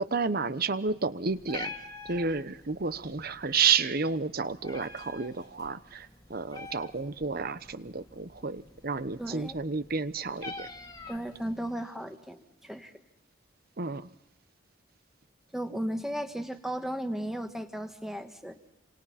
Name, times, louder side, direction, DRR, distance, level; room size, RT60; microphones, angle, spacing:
voice 1, 0.0-1.7 2.0-10.7 13.8-14.1, right 5 dB, 50° right, 14 dB, 0.9 m, -31 dB
Meow, 1.3-11.7, left 2 dB, 20° left, 2.0 m, -47 dB
voice 2, 9.2-9.6 11.1-12.9 15.5-18.6, equal, ahead, 6 dB, 1.5 m, -35 dB
28.5 x 27.0 x 4.2 m, 0.84 s
head